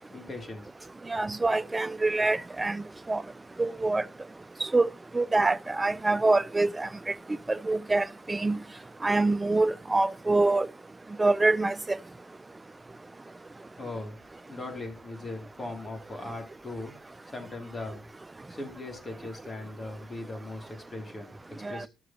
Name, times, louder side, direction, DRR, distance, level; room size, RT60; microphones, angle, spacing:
voice 1, 0.1-0.7 13.8-14.2 14.5-18.1 18.5-21.9, left 2 dB, 35° left, 2.6 m, -39 dB
voice 2, 1.1-3.2 3.6-4.1 4.6-4.9 5.1-7.1 7.5-8.6 9.0-10.7 11.2-12.0 21.6-21.8, right 2 dB, 20° right, 0.4 m, -25 dB
14.0 x 6.2 x 2.8 m
supercardioid pair, 60°, 0 cm